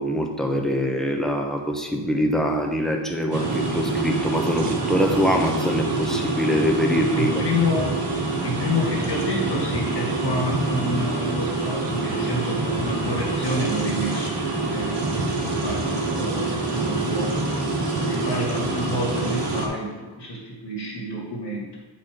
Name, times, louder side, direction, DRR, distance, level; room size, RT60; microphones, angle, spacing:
voice 1, 0.0-7.3, equal, ahead, 1 dB, 1.0 m, -23 dB
sound 1, 3.3-19.7, right 2 dB, 75° right, 1.4 m, -26 dB
voice 2, 7.1-8.0 8.4-14.4 14.7-17.4 18.0-21.7, left 1 dB, 70° left, -5 dB, 2.3 m, -29 dB
8.3 x 4.4 x 5.1 m, 1.2 s
wide cardioid pair, 95°, 43 cm